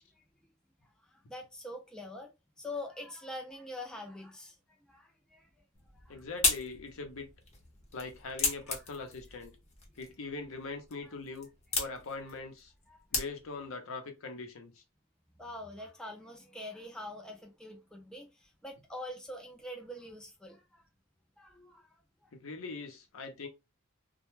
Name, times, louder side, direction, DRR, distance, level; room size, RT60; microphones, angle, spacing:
voice 1, 0.8-2.3 2.6-5.5 5.9-6.2 11.0-11.1 12.9-13.1 15.4-20.8 21.4-21.9 22.2-22.3, left 1 dB, 5° left, 0.3 m, -45 dB
sound 1, 5.7-13.7, left 4 dB, 35° left, 0.7 m, -37 dB
voice 2, 6.1-7.3 7.9-9.6 10.0-11.5 11.8-12.7 13.1-14.8 22.3-23.5, left 3 dB, 75° left, 0.6 m, -42 dB
2.1 x 2.1 x 3.0 m
head